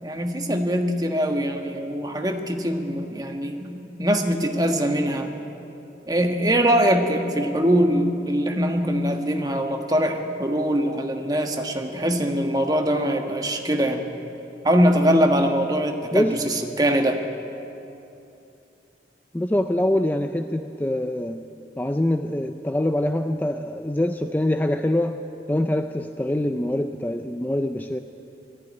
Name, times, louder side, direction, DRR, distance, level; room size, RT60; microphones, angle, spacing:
voice 1, 0.0-5.3 6.1-14.0 14.6-17.2, equal, 20° right, 3 dB, 1.4 m, -22 dB
voice 2, 16.1-16.5 19.3-21.5 21.8-25.2 25.5-28.0, left 1 dB, 10° left, 7 dB, 0.4 m, -24 dB
19.0 x 14.5 x 9.8 m, 2.8 s
head